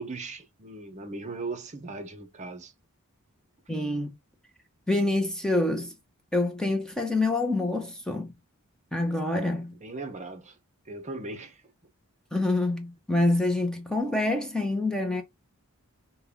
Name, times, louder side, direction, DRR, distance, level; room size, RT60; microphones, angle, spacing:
voice 1, 0.0-2.7 9.8-10.6 10.9-11.6, right 3 dB, 30° right, 0.7 m, -38 dB
voice 2, 3.7-4.1 4.9-5.9 6.3-8.3 8.9-9.7 12.3-15.2, left 2 dB, 5° left, 0.7 m, -26 dB
5.4 x 2.2 x 3.5 m
head